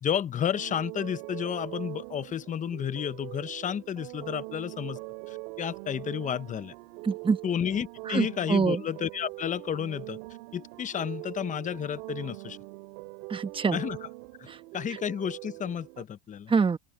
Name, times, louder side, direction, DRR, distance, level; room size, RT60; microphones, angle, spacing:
voice 1, 0.0-5.0 5.3-6.7 7.4-10.2 10.5-12.6 13.7-14.0 14.4-14.5 14.7-16.5, left 9 dB, 20° left, 0.7 m, -31 dB
sound 1, 0.5-16.0, right 26 dB, 65° right, 2.6 m, -42 dB
voice 2, 7.0-7.4 8.1-8.8 13.3-13.8 14.5-14.6 16.5-16.8, right 5 dB, 10° right, 1.0 m, -25 dB
open air
supercardioid pair, 130°, 44 cm